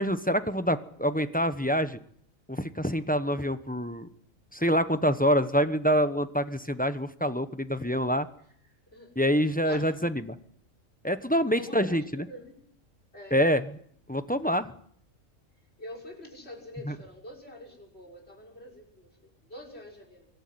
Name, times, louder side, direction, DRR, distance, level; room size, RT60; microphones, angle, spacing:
voice 1, 0.0-2.0 2.5-4.1 4.5-8.3 9.2-10.3 11.0-12.3 13.3-13.6 14.1-14.7 16.9-17.0, equal, 5° left, 11 dB, 0.9 m, -26 dB
voice 2, 8.6-10.0 11.5-12.6 13.1-13.4 15.8-20.3, left 1 dB, 50° left, 2 dB, 6.7 m, -46 dB
24.5 x 13.0 x 9.7 m, 0.63 s
omnidirectional pair, 1.4 m